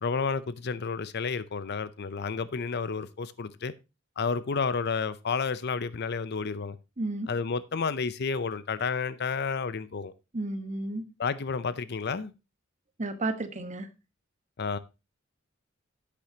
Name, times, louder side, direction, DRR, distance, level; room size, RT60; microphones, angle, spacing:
voice 1, 0.0-3.7 4.2-6.8 7.3-10.1 11.2-12.3 14.6-14.8, left 5 dB, 55° left, 0.6 m, -31 dB
voice 2, 7.0-7.3 10.3-11.1 13.0-13.9, right 2 dB, 35° right, 1.2 m, -32 dB
10.5 x 8.5 x 2.8 m
head